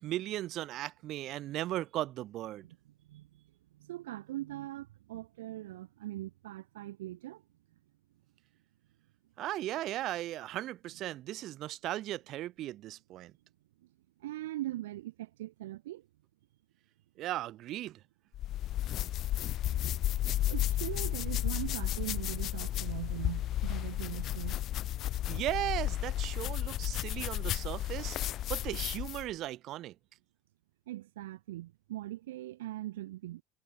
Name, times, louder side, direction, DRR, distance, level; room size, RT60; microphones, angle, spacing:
voice 1, 0.0-2.7 9.4-13.3 17.2-18.0 25.3-29.9, right 14 dB, 55° right, 1.4 m, -37 dB
voice 2, 3.7-7.4 14.2-16.1 19.5-20.0 20.4-24.6 30.9-33.4, right 15 dB, 80° right, 1.0 m, -41 dB
sound 1, 18.3-29.3, left 13 dB, 50° left, 0.7 m, -33 dB
hypercardioid pair, 70°, 0 cm